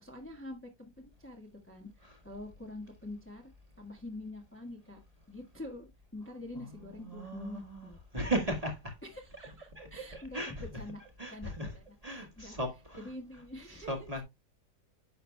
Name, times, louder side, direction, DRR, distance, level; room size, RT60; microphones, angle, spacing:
voice 1, 0.0-3.5 3.8-5.0 5.3-8.3 9.0-11.0 11.3-11.8 12.1-12.6 12.9-14.2, left 2 dB, 10° left, 1.3 m, -46 dB
voice 2, 6.5-8.9 9.8-10.8 11.2-11.7 12.0-13.0 13.7-14.2, right 1 dB, 20° right, 1.8 m, -37 dB
9.8 x 6.4 x 2.3 m
omnidirectional pair, 1.8 m